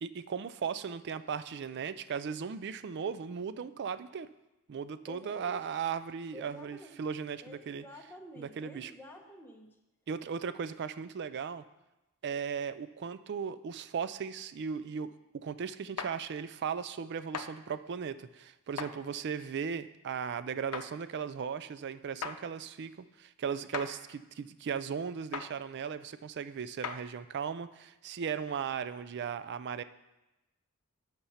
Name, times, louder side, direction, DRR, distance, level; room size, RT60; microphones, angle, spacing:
voice 1, 0.0-4.3 4.7-7.8 8.4-8.9 10.1-11.6 12.2-29.8, right 6 dB, 50° right, 13 dB, 0.4 m, -37 dB
voice 2, 5.1-5.7 6.3-7.0 7.4-9.8, left 1 dB, 10° left, 1 dB, 0.9 m, -50 dB
sound 1, 16.0-16.1 17.3-17.5 18.8-18.9 20.7-20.9 22.2-22.4 23.7-23.9 25.3-25.5 26.8-27.0, left 6 dB, 85° left, 0.6 m, -37 dB
8.7 x 6.0 x 5.6 m, 0.99 s
head